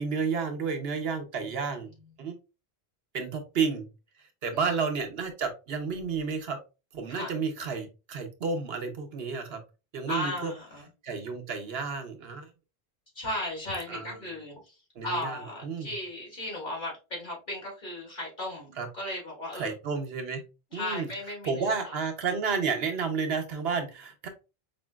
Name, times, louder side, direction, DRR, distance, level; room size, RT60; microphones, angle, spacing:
voice 1, 0.0-1.9 2.2-2.4 3.1-3.9 4.4-6.6 6.9-9.6 9.9-10.5 11.0-12.5 13.9-14.1 15.0-15.9 18.8-18.9 19.5-20.4 20.7-21.1 21.4-24.3, right 5 dB, 75° right, 5 dB, 0.9 m, -31 dB
voice 2, 1.3-2.1 4.5-4.7 7.2-7.3 10.1-10.9 13.2-14.8 15.0-19.7 20.7-21.7, left 1 dB, 50° left, -3 dB, 2.0 m, -36 dB
5.1 x 2.6 x 2.2 m, 0.29 s
omnidirectional pair, 1.0 m